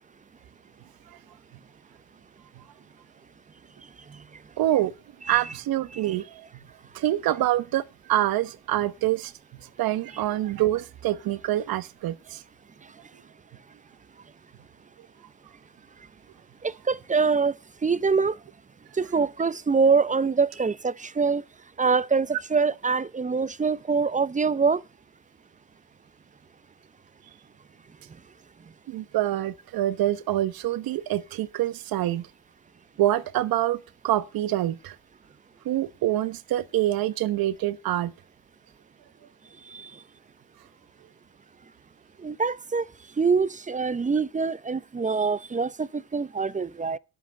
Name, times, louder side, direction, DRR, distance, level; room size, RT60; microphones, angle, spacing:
voice 1, 4.6-4.9 5.3-6.6 6.9-12.4 28.9-32.3 33.0-35.0 35.6-38.1, right 14 dB, 65° right, 1.1 m, -26 dB
voice 2, 16.6-17.5 17.8-18.4 19.0-21.4 21.8-24.8 39.7-39.9 42.2-42.9 43.2-47.0, right 5 dB, 20° right, 0.6 m, -24 dB
11.5 x 8.1 x 6.5 m
supercardioid pair, 70°, 38 cm